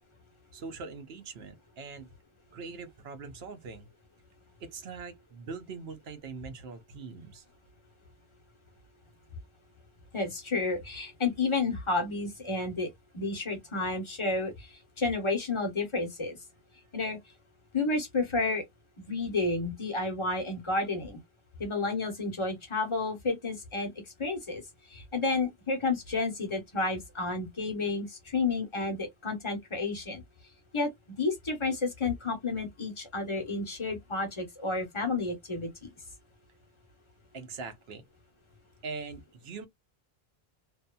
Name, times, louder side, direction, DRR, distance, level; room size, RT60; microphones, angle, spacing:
voice 1, 0.5-2.1 2.5-3.9 4.6-7.4 37.3-38.1 38.8-39.7, right 4 dB, 75° right, 1.0 m, -42 dB
voice 2, 10.1-12.9 13.1-14.7 15.0-16.4 16.9-17.2 17.7-18.6 19.0-21.2 21.6-23.9 24.2-24.6 24.9-30.2 30.7-30.9 31.2-35.7, left 3 dB, 30° left, 0.9 m, -31 dB
2.7 x 2.3 x 2.2 m
omnidirectional pair, 1.0 m